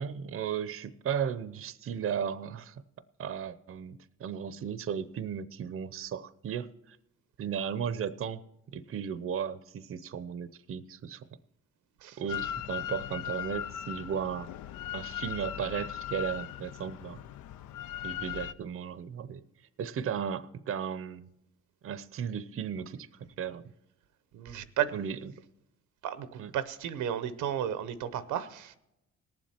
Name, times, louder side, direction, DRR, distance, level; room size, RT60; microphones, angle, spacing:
voice 1, 0.0-2.8 3.2-7.0 7.4-8.4 8.7-11.2 12.2-14.5 14.9-17.2 18.0-19.4 19.8-21.3 21.8-23.7 24.9-25.2 26.4-26.5, right 8 dB, 45° right, 0.6 m, -35 dB
Drill, 12.3-18.5, left 11 dB, 75° left, 0.5 m, -38 dB
voice 2, 24.3-25.0 26.0-28.8, right 10 dB, 85° right, 0.8 m, -33 dB
18.5 x 7.5 x 4.3 m
cardioid pair, 90°, 30 cm